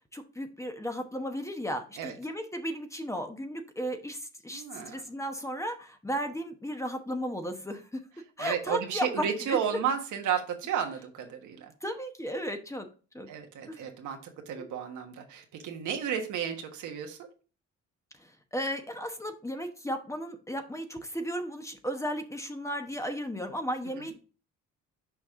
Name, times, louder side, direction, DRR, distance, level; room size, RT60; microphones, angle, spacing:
voice 1, 0.1-8.0 8.4-9.6 11.8-12.9 13.1-13.3 13.7-13.8 14.5-14.8 18.2-24.3, equal, 10° left, 6 dB, 1.0 m, -35 dB
voice 2, 4.5-5.0 8.4-11.7 13.3-17.3, right 8 dB, 80° right, 4 dB, 1.4 m, -33 dB
6.3 x 4.8 x 3.6 m, 0.36 s
cardioid pair, 90°, 30 cm